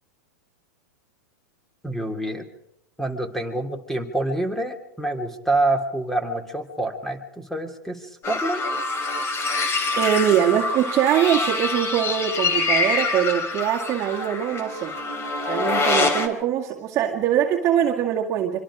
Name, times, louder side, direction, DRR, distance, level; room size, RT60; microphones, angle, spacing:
voice 1, 1.8-2.5 3.0-8.6, right 2 dB, 5° left, 6 dB, 3.2 m, -27 dB
sound 1, 8.2-16.3, left 3 dB, 30° left, 3.6 m, -25 dB
voice 2, 10.0-15.0 15.5-18.6, right 10 dB, 35° right, -2 dB, 2.2 m, -22 dB
25.5 x 25.0 x 5.1 m, 0.78 s
hypercardioid pair, 115°, 9 cm